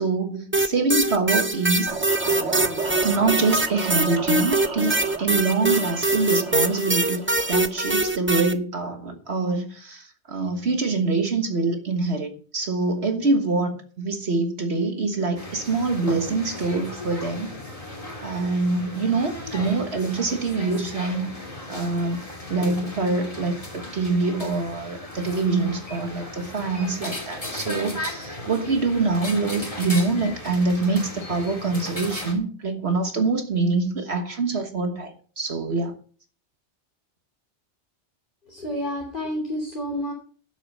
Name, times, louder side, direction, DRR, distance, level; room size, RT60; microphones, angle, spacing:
voice 1, 0.0-1.9 3.0-7.2 7.5-17.5 18.2-21.4 21.7-36.0, right 3 dB, 65° right, 1.7 m, -25 dB
sound 1, 0.5-8.5, right 2 dB, 15° right, 0.7 m, -23 dB
sound 2, 1.9-7.8, right 4 dB, 85° right, 2.3 m, -33 dB
sound 3, 15.4-32.3, left 1 dB, 30° left, 3.3 m, -36 dB
voice 2, 38.5-40.1, equal, 45° left, 3.2 m, -29 dB
11.5 x 8.3 x 5.4 m
omnidirectional pair, 1.2 m